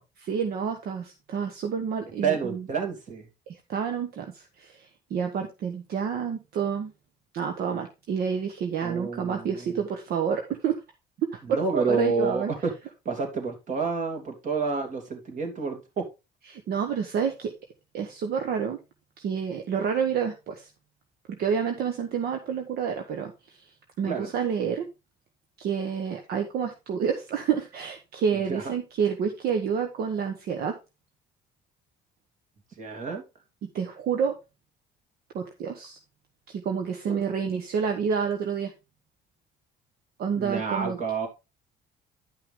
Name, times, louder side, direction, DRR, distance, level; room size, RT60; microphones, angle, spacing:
voice 1, 0.2-2.7 3.5-6.9 7.3-10.8 11.3-12.5 16.5-17.5 17.9-18.8 19.2-20.7 21.3-23.3 24.0-24.8 25.6-30.7 33.6-34.3 35.3-36.0 36.5-38.7 40.2-41.0, right 7 dB, 65° right, 5 dB, 1.2 m, -29 dB
voice 2, 2.2-3.2 8.8-9.5 11.5-12.7 13.0-16.1 24.0-24.3 28.5-28.6 32.8-33.2 37.1-37.2 40.4-41.3, right 5 dB, 50° right, 3 dB, 2.9 m, -29 dB
10.5 x 5.7 x 3.6 m, 0.26 s
cardioid pair, 110°, 17 cm